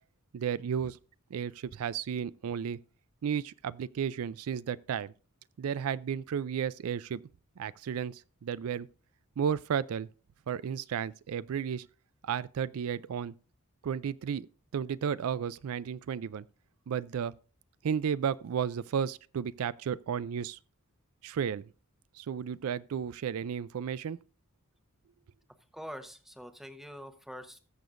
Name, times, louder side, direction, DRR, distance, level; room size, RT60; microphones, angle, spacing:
voice 1, 0.3-1.0 1.3-2.8 3.2-5.1 5.6-7.2 7.6-8.9 9.4-10.1 10.5-11.9 12.2-13.3 13.8-14.5 14.7-16.4 16.9-17.3 17.8-20.6 21.2-21.6 22.2-24.2, right 7 dB, 70° right, 0.4 m, -33 dB
voice 2, 25.7-27.6, equal, ahead, 0.9 m, -44 dB
20.5 x 6.9 x 2.5 m
head